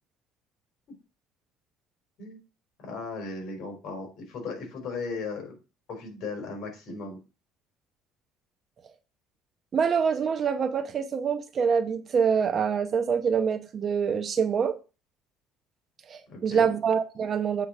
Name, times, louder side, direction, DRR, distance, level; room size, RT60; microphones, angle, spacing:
voice 1, 2.8-5.6 5.9-7.2 16.3-16.8, left 3 dB, 55° left, 3.9 m, -36 dB
voice 2, 9.7-14.7 16.1-17.7, right 6 dB, 35° right, 0.9 m, -25 dB
8.1 x 3.8 x 6.3 m
cardioid pair, 130°, 0 cm